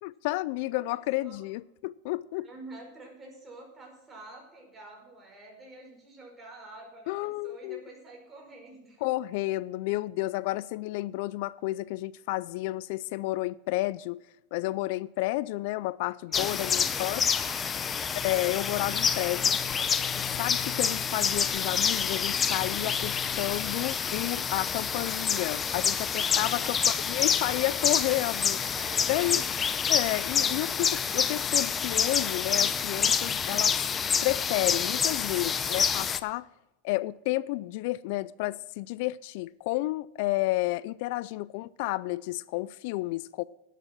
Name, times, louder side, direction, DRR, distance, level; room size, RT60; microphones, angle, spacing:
voice 1, 0.0-2.5 7.1-7.8 9.0-14.2 14.5-17.2 18.1-19.4 20.2-26.8 27.0-28.6 29.1-29.4 29.9-33.8 34.2-36.5 36.8-43.4, left 19 dB, 60° left, 0.3 m, -31 dB
voice 2, 2.4-9.1 16.3-17.9 18.7-19.6 26.2-26.8 28.7-29.5 30.3-30.4, right 2 dB, 15° right, 4.9 m, -48 dB
sound 1, 16.3-36.2, left 6 dB, 20° left, 0.7 m, -28 dB
11.5 x 8.2 x 7.4 m
supercardioid pair, 135°, 0 cm